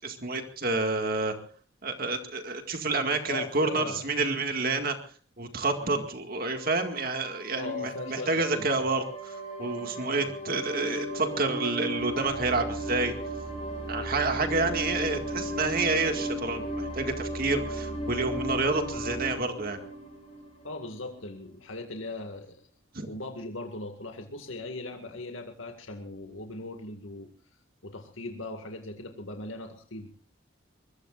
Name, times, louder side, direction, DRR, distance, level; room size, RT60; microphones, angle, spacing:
voice 1, 0.0-1.3 1.8-4.9 5.4-13.1 13.9-19.8 22.9-23.1, right 3 dB, 50° right, 5 dB, 2.0 m, -29 dB
voice 2, 3.3-4.0 5.8-6.1 7.5-8.7 10.2-10.3 20.6-22.7 23.1-27.3 27.8-30.1, left 2 dB, 80° left, 4 dB, 2.1 m, -39 dB
sound 1, 6.5-20.9, right 1 dB, 30° left, 7.3 m, -36 dB
24.5 x 22.0 x 2.5 m, 0.39 s
head